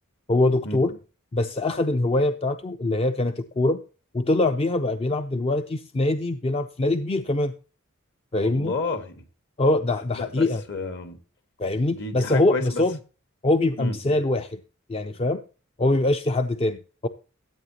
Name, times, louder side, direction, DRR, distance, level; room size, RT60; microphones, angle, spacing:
voice 1, 0.3-1.0 1.3-3.8 4.1-7.5 8.3-8.7 9.6-10.6 11.6-13.0 13.4-14.6 14.9-15.4 15.8-17.1, left 2 dB, 30° left, 0.4 m, -23 dB
voice 2, 8.3-9.2 10.1-11.2 11.9-12.8 13.8-14.0, left 3 dB, 60° left, 1.7 m, -31 dB
14.5 x 8.3 x 2.9 m
head